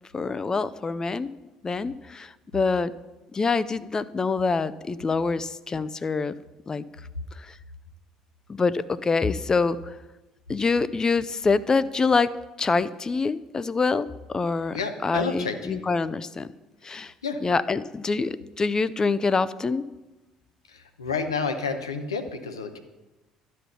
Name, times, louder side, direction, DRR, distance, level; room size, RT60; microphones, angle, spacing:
voice 1, 0.1-1.3 1.6-2.9 3.3-6.3 6.7-6.8 7.4-7.6 8.5-10.0 10.5-12.3 12.6-16.5 16.8-17.1 17.4-19.8, left 4 dB, 25° left, 16 dB, 0.5 m, -25 dB
voice 2, 14.7-15.8 17.2-17.4 20.7-22.8, left 5 dB, 85° left, 7 dB, 0.8 m, -30 dB
12.0 x 4.3 x 6.8 m, 1.1 s
figure-of-eight pair, 60°, 2 cm